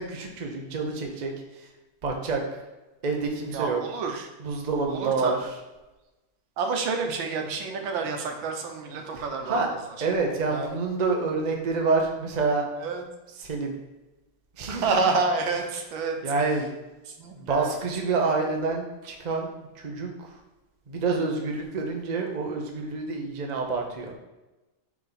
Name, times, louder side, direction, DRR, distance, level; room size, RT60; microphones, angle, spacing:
voice 1, 0.0-1.3 2.0-2.4 3.0-3.8 4.4-5.4 9.5-9.7 10.0-12.7 13.4-13.7 14.6-15.0 16.2-16.7 17.3-19.5 19.8-20.1 20.9-24.1, right 4 dB, 55° right, 1 dB, 0.4 m, -27 dB
voice 2, 3.5-4.3 4.9-5.3 6.6-9.6 10.4-10.7 12.8-13.0 14.7-16.2 17.2-17.7, right 4 dB, 75° right, 4 dB, 1.6 m, -28 dB
7.6 x 3.7 x 4.0 m, 1.1 s
omnidirectional pair, 2.2 m